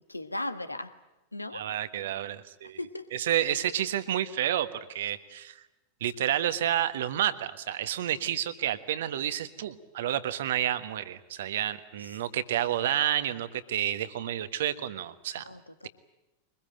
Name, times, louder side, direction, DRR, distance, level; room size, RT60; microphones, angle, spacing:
voice 1, 0.1-0.9 1.3-1.7 2.8-3.1 15.4-15.9, left 1 dB, 85° left, 12 dB, 1.4 m, -37 dB
voice 2, 1.5-2.8 3.1-5.6 6.0-15.4, right 11 dB, 60° right, 13 dB, 1.4 m, -30 dB
24.0 x 21.0 x 8.9 m, 1.0 s
figure-of-eight pair, 90°, 0 cm